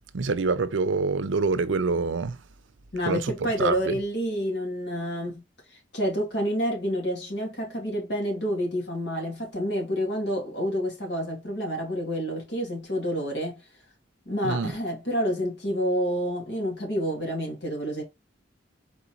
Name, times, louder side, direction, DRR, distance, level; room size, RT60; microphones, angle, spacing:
voice 1, 0.1-2.4 3.1-3.2 3.6-3.9 14.4-14.7, right 4 dB, 90° right, 0.6 m, -25 dB
voice 2, 2.9-5.4 5.7-13.6 14.3-18.0, equal, 65° left, 2.5 m, -28 dB
4.4 x 3.9 x 2.9 m
head